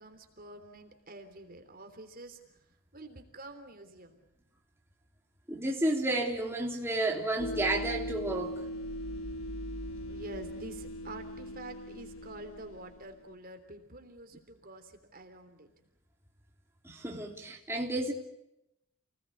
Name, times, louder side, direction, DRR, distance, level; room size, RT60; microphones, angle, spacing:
voice 1, 0.0-2.6 2.9-4.2 10.1-15.7, right 2 dB, 40° right, 3.3 m, -47 dB
voice 2, 5.5-8.6 16.8-18.1, right 1 dB, 10° right, 3.3 m, -31 dB
sound 1, 7.4-13.2, equal, 60° left, 1.4 m, -40 dB
30.0 x 19.0 x 8.7 m
head